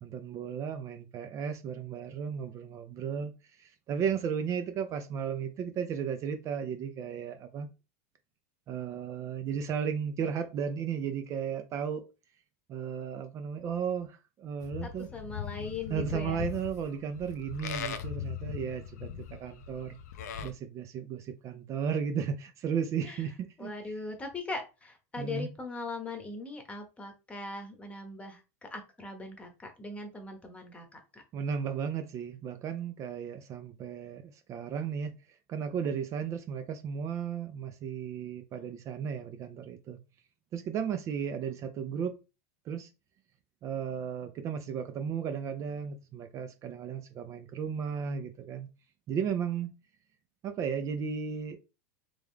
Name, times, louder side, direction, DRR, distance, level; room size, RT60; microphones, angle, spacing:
voice 1, 0.0-7.7 8.7-12.0 12.7-15.1 15.9-19.1 19.4-20.0 20.4-23.7 25.2-25.5 31.3-35.1 35.5-40.0 40.5-42.2 42.7-42.9 43.6-48.7 49.1-49.7 50.4-51.6, right 7 dB, 35° right, 0.5 m, -34 dB
Livestock farm animals working animals, 14.6-20.5, left 9 dB, 90° left, 0.6 m, -39 dB
voice 2, 14.8-16.5 23.0-23.2 23.6-31.2, left 3 dB, 15° left, 1.0 m, -40 dB
3.4 x 3.0 x 3.6 m
supercardioid pair, 130°, 9 cm